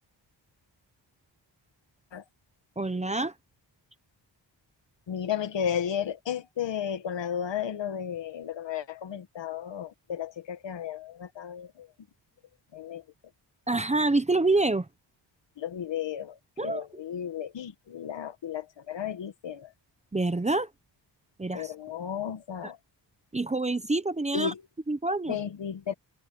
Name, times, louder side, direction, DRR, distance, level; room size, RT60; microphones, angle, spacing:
voice 1, 2.8-3.3 13.7-14.9 16.6-16.8 20.1-20.7 21.4-21.7 23.3-24.5 24.9-25.4, right 2 dB, 15° right, 0.7 m, -26 dB
voice 2, 5.1-11.9 12.7-13.0 15.6-19.7 21.5-22.8 24.3-24.6 25.3-25.9, left 8 dB, 75° left, 1.4 m, -34 dB
wide cardioid pair, 170°, 44 cm